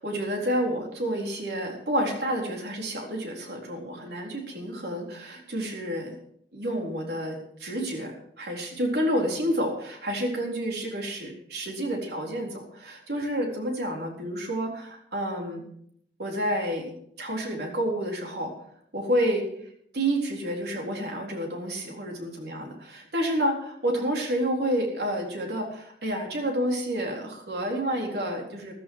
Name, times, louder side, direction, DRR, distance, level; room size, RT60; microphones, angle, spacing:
voice 1, 0.0-6.1 6.5-15.6 16.2-18.5 18.9-19.5 19.9-28.7, equal, 70° right, 1 dB, 3.9 m, -29 dB
14.5 x 13.0 x 4.7 m, 0.68 s
head